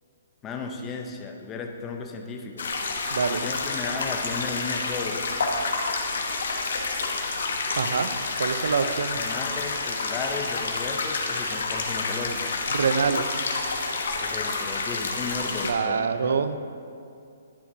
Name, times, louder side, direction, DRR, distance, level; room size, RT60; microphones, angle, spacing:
voice 1, 0.4-2.7 3.4-5.3 9.2-12.7 14.1-16.5, left 4 dB, 15° left, 3 dB, 0.5 m, -35 dB
sound 1, 2.6-15.7, left 3 dB, 70° left, 1.0 m, -29 dB
voice 2, 3.1-3.4 7.7-8.1 8.4-9.2 12.7-13.4 15.6-16.6, right 5 dB, 70° right, 11 dB, 0.4 m, -25 dB
10.5 x 6.8 x 2.6 m, 2.5 s
hypercardioid pair, 170°, 0 cm